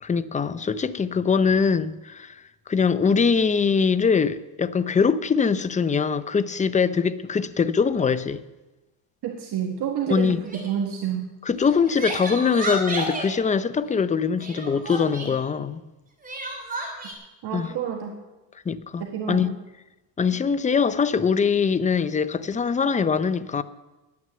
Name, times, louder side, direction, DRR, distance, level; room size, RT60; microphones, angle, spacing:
voice 1, 0.0-2.4 2.7-8.4 10.1-10.4 11.4-15.8 17.5-17.7 18.7-19.5 20.2-23.6, left 5 dB, 15° left, 0.5 m, -22 dB
voice 2, 9.2-10.4 10.6-11.3 17.4-18.1 19.0-19.5, right 9 dB, 55° right, 1.6 m, -28 dB
Crying sobbing, 10.4-10.7 11.6-13.3 14.4-15.4 16.2-17.1, right 1 dB, 20° right, 3.3 m, -31 dB
11.0 x 9.5 x 7.6 m
cardioid pair, 105°, 46 cm